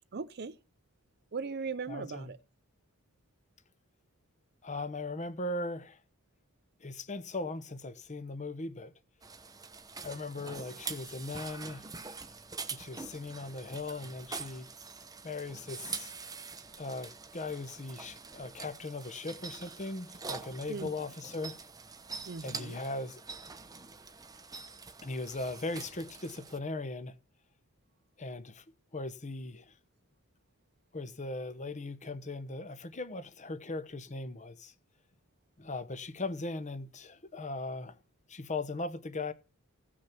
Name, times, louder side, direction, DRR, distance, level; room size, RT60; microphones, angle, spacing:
voice 1, 0.1-0.6 1.3-2.4 20.6-20.9 22.3-22.8, right 4 dB, 45° right, 0.6 m, -38 dB
voice 2, 1.9-2.3 4.6-6.0 6.8-8.9 10.0-11.9 12.7-14.7 15.2-16.1 16.8-21.6 22.4-23.2 25.0-27.2 28.2-28.6 28.9-29.7 30.9-34.7 35.6-38.0 38.3-39.3, left 2 dB, 35° left, 1.0 m, -39 dB
sound 1, 9.2-26.6, right 4 dB, 15° right, 0.8 m, -45 dB
16.0 x 6.3 x 5.9 m
head